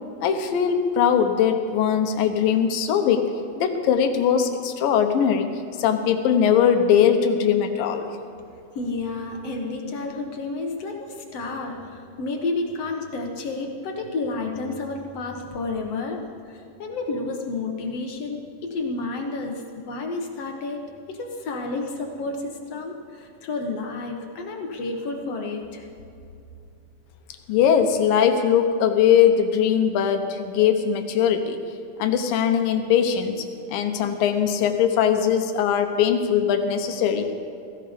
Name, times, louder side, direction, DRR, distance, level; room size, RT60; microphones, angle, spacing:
voice 1, 0.2-3.3 3.6-8.1 27.5-31.6 32.0-37.3, left 8 dB, 80° left, 6 dB, 2.8 m, -21 dB
voice 2, 8.8-25.8, left 3 dB, 60° left, 2 dB, 1.9 m, -31 dB
17.0 x 16.0 x 5.1 m, 2.6 s
omnidirectional pair, 4.0 m